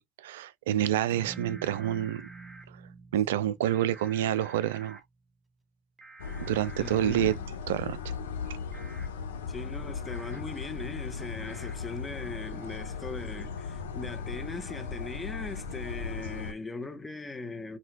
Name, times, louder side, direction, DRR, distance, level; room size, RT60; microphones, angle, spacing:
voice 1, 0.0-2.3 2.7-2.8 3.1-5.0 6.4-7.3 7.7-8.1, right 12 dB, 80° right, 0.3 m, -28 dB
sound 1, 1.1-5.3, right 4 dB, 45° right, 0.9 m, -48 dB
sound 2, 1.3-2.7 3.6-5.0 6.0-7.4 8.7-9.1 10.1-10.4 11.4-11.7, right 2 dB, 20° right, 1.6 m, -50 dB
sound 3, 6.2-16.5, left 5 dB, 85° left, 0.7 m, -37 dB
voice 2, 6.8-7.4 9.5-17.8, left 3 dB, 20° left, 1.2 m, -39 dB
5.9 x 2.8 x 2.4 m
hypercardioid pair, 65°, 0 cm